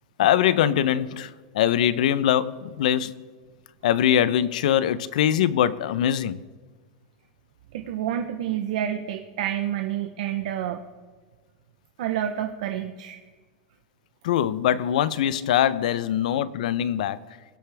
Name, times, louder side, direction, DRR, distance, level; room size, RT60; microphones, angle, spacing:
voice 1, 0.2-3.1 3.8-6.4 14.2-17.2, left 10 dB, 90° left, 0.6 m, -22 dB
voice 2, 7.7-10.8 12.0-13.2, right 10 dB, 70° right, 0.8 m, -29 dB
22.0 x 8.2 x 3.4 m
supercardioid pair, 175°, 4 cm